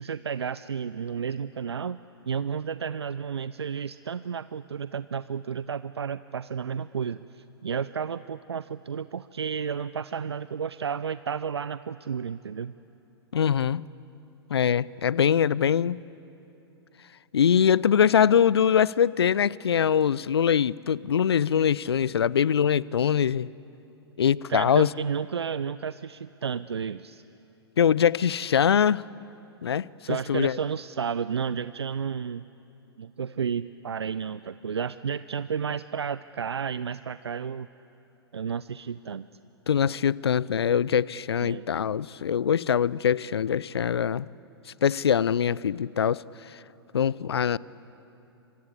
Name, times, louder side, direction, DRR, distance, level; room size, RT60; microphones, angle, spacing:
voice 1, 0.0-12.7 24.5-27.2 30.1-32.4 33.0-37.7 38.3-39.3 41.4-41.7, right 7 dB, 75° right, 0.5 m, -32 dB
voice 2, 13.3-13.8 14.5-16.0 17.3-23.5 24.2-24.9 27.8-29.0 29.6-29.9 30.3-30.6 39.7-44.3 44.8-46.2 46.9-47.6, left 8 dB, 70° left, 0.5 m, -23 dB
26.0 x 24.5 x 8.5 m
figure-of-eight pair, 110°, 14 cm